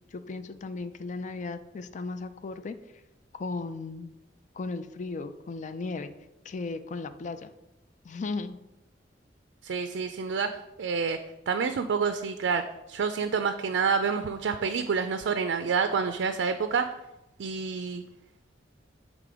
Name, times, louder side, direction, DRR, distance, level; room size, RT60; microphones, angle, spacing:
voice 1, 0.1-2.8 3.3-4.1 4.5-6.1 6.4-7.5 8.0-8.6, left 3 dB, 45° left, 11 dB, 0.4 m, -36 dB
voice 2, 9.6-11.2 11.5-16.9 17.4-18.0, right 5 dB, 80° right, 8 dB, 0.4 m, -28 dB
6.8 x 3.6 x 4.8 m, 0.95 s
head